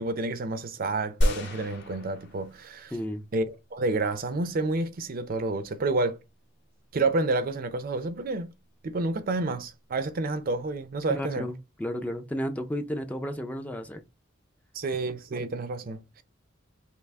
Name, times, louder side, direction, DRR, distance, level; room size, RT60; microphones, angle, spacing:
voice 1, 0.0-2.9 3.3-6.2 6.9-8.5 8.8-11.5 14.7-16.2, right 2 dB, 45° right, 0.5 m, -29 dB
sound 1, 1.2-3.0 3.5-3.6, equal, 60° left, 1.1 m, -29 dB
voice 2, 2.9-3.2 11.1-14.0, equal, 10° left, 0.4 m, -33 dB
5.5 x 2.0 x 3.4 m
head